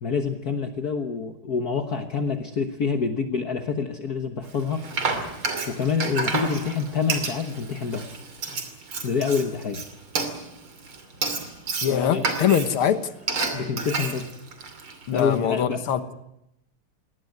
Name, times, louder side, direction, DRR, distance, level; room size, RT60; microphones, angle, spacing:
voice 1, 0.0-4.9 5.7-8.2 9.0-9.8 11.9-12.3 13.5-14.2 15.1-15.8, left 5 dB, 50° left, 5 dB, 1.7 m, -27 dB
Frying (food), 4.5-15.4, right 4 dB, 85° right, 3.6 m, -30 dB
voice 2, 11.8-13.0 15.1-16.1, left 9 dB, 90° left, 10 dB, 2.2 m, -23 dB
21.0 x 18.0 x 9.5 m, 0.83 s
omnidirectional pair, 2.3 m